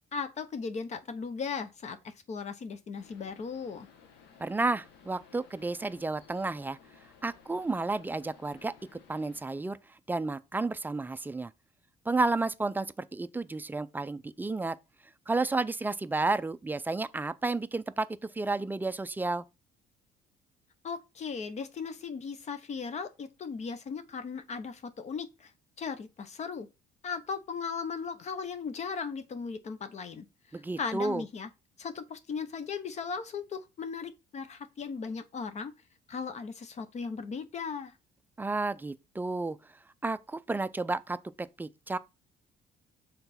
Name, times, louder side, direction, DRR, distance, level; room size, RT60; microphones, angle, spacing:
voice 1, 0.1-3.9 20.8-25.5 25.8-26.7 27.0-31.5 31.8-35.7 36.1-37.9, left 5 dB, 40° left, 0.8 m, -37 dB
sound 1, 3.0-9.4, left 6 dB, 85° left, 1.1 m, -57 dB
voice 2, 4.4-6.8 7.2-9.8 10.1-11.5 12.1-14.8 15.3-18.1 18.3-19.4 30.5-31.2 38.4-39.6 40.0-42.0, right 3 dB, 10° right, 0.3 m, -31 dB
5.8 x 3.9 x 4.2 m
cardioid pair, 110°, 17 cm